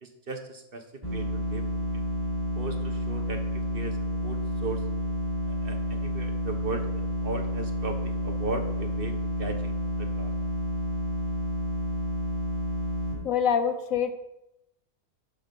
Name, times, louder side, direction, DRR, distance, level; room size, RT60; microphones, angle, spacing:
voice 1, 0.0-0.8 1.1-1.6 2.6-4.8 5.5-9.1 9.4-9.7 10.0-10.3, right 3 dB, 40° right, 5 dB, 1.2 m, -37 dB
sound 1, 1.0-13.1, left 1 dB, 15° right, 4.3 m, -30 dB
voice 2, 13.2-14.1, left 7 dB, 65° left, 9 dB, 1.2 m, -25 dB
12.5 x 6.3 x 5.3 m, 0.86 s
omnidirectional pair, 1.6 m